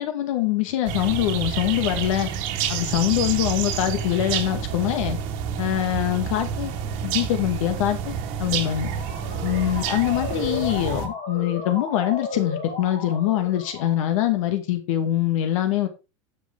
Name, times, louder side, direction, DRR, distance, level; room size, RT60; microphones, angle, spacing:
voice 1, 0.0-2.3 2.7-5.2 5.6-6.7 7.0-8.9 9.4-15.9, left 13 dB, 80° left, 2.2 m, -24 dB
sound 1, 0.8-11.1, right 8 dB, 60° right, 2.1 m, -29 dB
Motor vehicle (road) / Siren, 8.4-14.3, left 3 dB, 30° left, 3.8 m, -34 dB
9.4 x 6.9 x 3.8 m
supercardioid pair, 130°, 17 cm